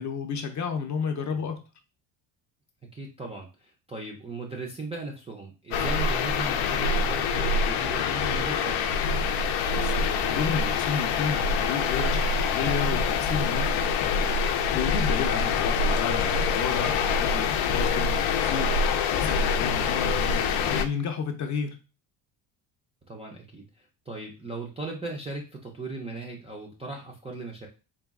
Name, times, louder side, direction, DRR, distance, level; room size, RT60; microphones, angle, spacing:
voice 1, 0.0-1.6 9.7-14.3 14.7-21.8, left 5 dB, 40° left, 0.5 m, -32 dB
voice 2, 2.9-8.9 15.3-15.6 19.7-19.8 23.1-27.7, right 2 dB, 15° right, 0.3 m, -38 dB
sound 1, 5.7-20.9, left 5 dB, 85° left, 0.6 m, -25 dB
4.0 x 2.2 x 3.5 m
cardioid pair, 165°, 46 cm